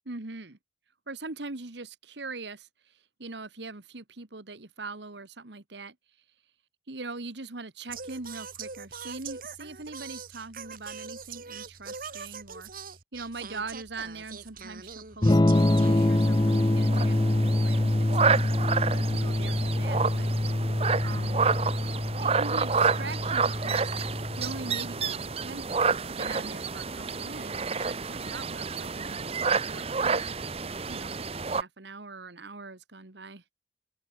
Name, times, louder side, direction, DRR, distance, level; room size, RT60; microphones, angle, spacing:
voice 1, 0.1-0.6 1.1-6.0 6.9-15.4 15.8-18.4 18.9-20.3 21.0-21.5 22.2-23.9 24.4-25.6 26.1-30.2 30.9-33.4, right 3 dB, 70° right, 1.6 m, -42 dB
Singing, 7.9-16.6, right 5 dB, 50° right, 2.5 m, -43 dB
Electric guitar / Strum, 15.2-25.0, left 1 dB, 25° left, 0.6 m, -25 dB
sound 1, 15.5-31.6, right 5 dB, 35° right, 0.9 m, -30 dB
open air
head